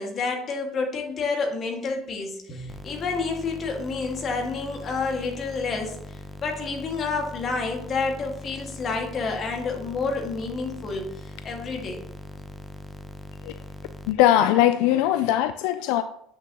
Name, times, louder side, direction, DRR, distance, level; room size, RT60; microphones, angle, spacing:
voice 1, 0.0-12.0, left 4 dB, 40° left, 1.8 m, -29 dB
sound 1, 2.7-14.1, left 1 dB, 5° left, 0.8 m, -41 dB
voice 2, 14.1-16.0, left 12 dB, 75° left, 0.3 m, -20 dB
8.3 x 6.1 x 2.9 m
supercardioid pair, 105°, 0 cm